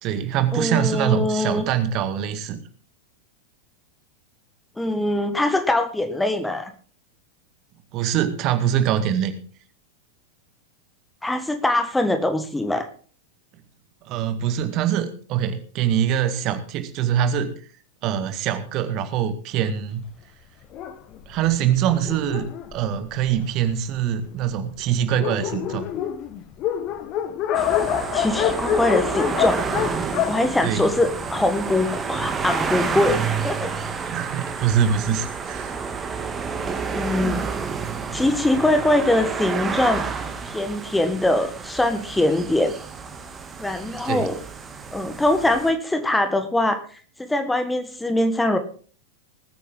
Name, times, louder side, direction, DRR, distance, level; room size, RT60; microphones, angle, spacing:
voice 1, 0.0-2.6 7.9-9.3 14.1-17.6 18.0-20.0 21.3-25.9 30.6-30.9 34.1-35.8 44.0-44.3, right 9 dB, 40° right, 9 dB, 1.9 m, -24 dB
voice 2, 0.5-1.7 4.8-6.7 11.2-12.9 28.1-29.6 30.0-33.7 36.9-37.5 38.1-40.0 40.4-42.7 43.6-44.4 44.9-46.8 47.2-48.6, left 1 dB, 5° left, 8 dB, 1.6 m, -22 dB
Dog, 20.7-23.7 24.4-24.5 24.8-24.9 25.1-31.5, left 10 dB, 35° left, 1.4 m, -27 dB
sound 1, 27.5-45.7, right 5 dB, 20° right, 2.3 m, -30 dB
20.0 x 9.2 x 3.8 m, 0.42 s
figure-of-eight pair, 90°, 0 cm